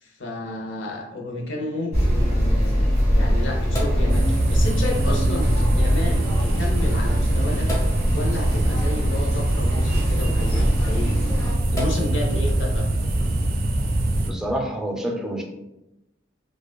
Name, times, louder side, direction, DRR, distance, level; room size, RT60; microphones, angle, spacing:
voice 1, 0.0-7.7 8.1-11.2 11.7-12.9, left 1 dB, 80° left, 0 dB, 0.7 m, -31 dB
sound 1, 1.9-11.5, equal, 40° left, 1.4 m, -23 dB
Sink (filling or washing), 3.6-13.5, equal, 20° left, 0.8 m, -33 dB
sound 2, 4.1-14.3, right 1 dB, 55° right, 0.5 m, -23 dB
voice 2, 14.3-15.4, right 1 dB, 5° right, 1 dB, 0.4 m, -27 dB
4.7 x 2.3 x 2.2 m, 0.93 s
head